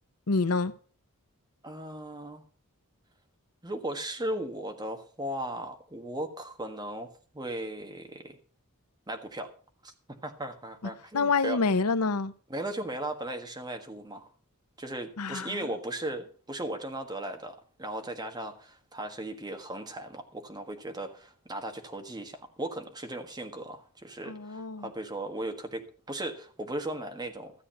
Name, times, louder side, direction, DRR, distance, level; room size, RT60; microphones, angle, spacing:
voice 1, 0.3-0.7 11.1-12.3 15.2-15.6 24.3-24.9, left 4 dB, 85° left, 0.8 m, -27 dB
voice 2, 1.6-2.4 3.6-8.4 9.1-9.5 9.8-9.9 10.2-11.6 12.5-14.3 14.8-27.5, right 1 dB, 20° right, 1.5 m, -37 dB
13.5 x 8.3 x 5.7 m
head